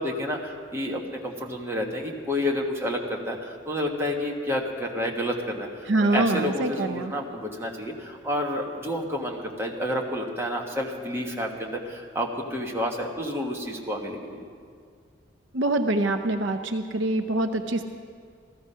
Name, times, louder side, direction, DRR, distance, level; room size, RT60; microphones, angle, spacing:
voice 1, 0.0-5.7 6.0-14.4, left 1 dB, 15° right, -1 dB, 1.4 m, -30 dB
voice 2, 5.9-7.1 15.5-17.8, right 2 dB, 65° right, 7 dB, 0.6 m, -25 dB
15.0 x 13.5 x 5.5 m, 2.1 s
head